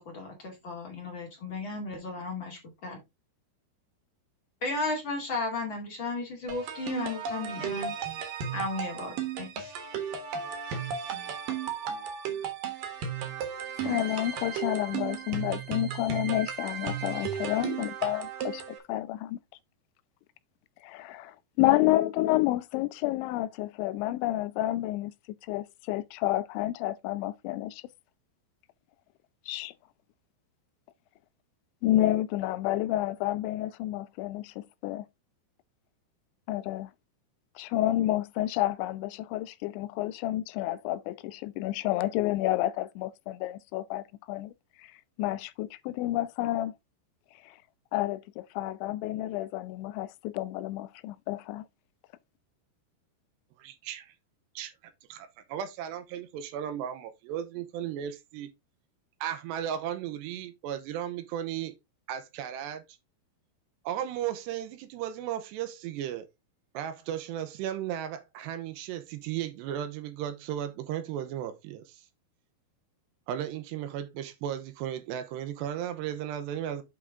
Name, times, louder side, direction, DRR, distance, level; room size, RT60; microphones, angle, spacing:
voice 1, 0.0-3.0 4.6-7.9 8.5-9.7, left 3 dB, 35° left, 2.1 m, -34 dB
sound 1, 6.5-18.8, right 7 dB, 60° right, 2.6 m, -35 dB
voice 2, 13.8-18.6 18.9-19.4 20.8-25.1 25.5-27.8 29.5-29.7 31.8-35.1 36.5-36.9 37.6-44.5 44.8-44.9 45.2-46.8 47.4-47.6 47.9-51.7, left 15 dB, 85° left, 3.0 m, -30 dB
voice 3, 53.6-54.1 54.6-54.7 55.1-58.5 59.2-61.7 62.1-62.8 63.8-66.3 66.7-72.1 73.3-76.8, right 10 dB, 80° right, 2.9 m, -35 dB
8.6 x 5.0 x 3.6 m
omnidirectional pair, 5.2 m